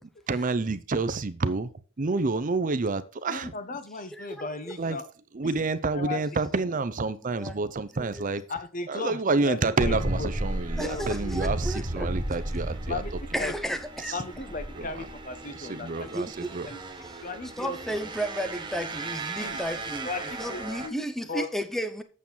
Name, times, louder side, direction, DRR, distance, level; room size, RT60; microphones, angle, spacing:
voice 1, 0.3-1.7 2.0-3.5 4.8-5.0 5.3-8.4 8.9-13.0 14.1-14.2 14.8-15.1 15.6-16.7, right 3 dB, 40° right, 0.5 m, -28 dB
voice 2, 3.3-5.0 5.9-6.2 8.5-9.2 9.4-10.3 10.8-11.4 12.9-13.1 13.4-13.5 14.1-16.1 16.6-16.8 17.2-17.8 19.4-19.6 20.0-21.0 21.3-21.5, left 3 dB, 40° left, 1.0 m, -36 dB
voice 3, 4.1-4.5 7.4-7.6 8.0-8.3 10.8-12.1 13.3-14.1 16.1-16.5 17.1-17.3 17.6-20.1 20.4-22.0, equal, ahead, 0.7 m, -33 dB
sound 1, 9.8-20.9, right 1 dB, 20° right, 1.1 m, -34 dB
8.3 x 7.1 x 4.4 m
head